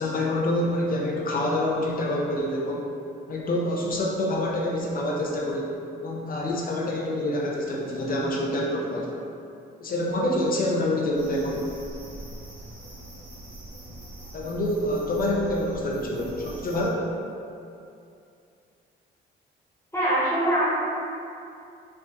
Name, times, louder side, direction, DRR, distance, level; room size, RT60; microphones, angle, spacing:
voice 1, 0.0-2.9 3.3-5.7 6.0-9.2 9.8-11.6 14.3-17.1, left 1 dB, 45° left, -3 dB, 0.6 m, -26 dB
sound 1, 11.1-16.9, right 1 dB, 70° right, 1.3 m, -42 dB
voice 2, 19.9-20.7, right 1 dB, 15° left, -11 dB, 1.4 m, -23 dB
5.5 x 2.6 x 2.6 m, 2.5 s
cardioid pair, 90°, 20 cm